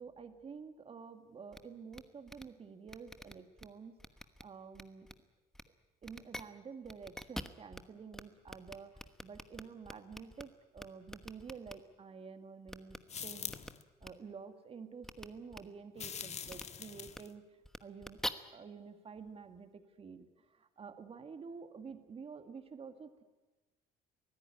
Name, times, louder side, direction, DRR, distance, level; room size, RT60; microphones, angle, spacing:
voice 1, 0.0-4.0 4.4-5.1 6.0-13.0 13.2-13.6 14.0-17.4 17.8-18.2 18.5-23.2, right 5 dB, 35° right, 8 dB, 1.9 m, -50 dB
sound 1, 1.5-1.6 1.9-2.0 2.3-2.4 2.9-3.6 4.0-4.4 4.7-5.1 5.5-5.6 6.0-6.4 6.8-7.8 8.1-8.2 8.5-10.4 10.8-11.7 12.7-13.0 13.5-13.7 14.0-14.1 15.0-15.2 15.5-15.6 16.5-16.6 17.1-17.2 17.6-18.3, equal, 5° left, 1.2 m, -44 dB
sound 2, 13.1-13.8 16.0-17.3, left 7 dB, 40° left, 1.4 m, -43 dB
24.0 x 15.5 x 9.8 m, 1.2 s
cardioid pair, 110°, 17 cm